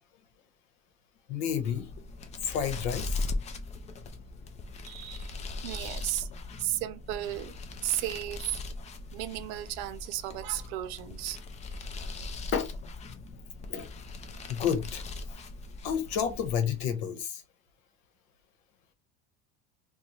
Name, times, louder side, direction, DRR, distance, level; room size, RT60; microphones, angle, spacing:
voice 1, 1.3-1.8 2.4-3.2 12.5-12.7 13.7-13.9 14.5-15.0 15.8-17.4, left 8 dB, 65° left, 1.1 m, -30 dB
sound 1, 1.5-17.0, left 3 dB, 20° left, 0.4 m, -40 dB
voice 2, 4.8-5.3 5.6-6.3 6.6-7.5 7.8-8.6 9.1-11.4, right 14 dB, 65° right, 0.7 m, -34 dB
3.9 x 2.3 x 3.0 m
supercardioid pair, 135°, 34 cm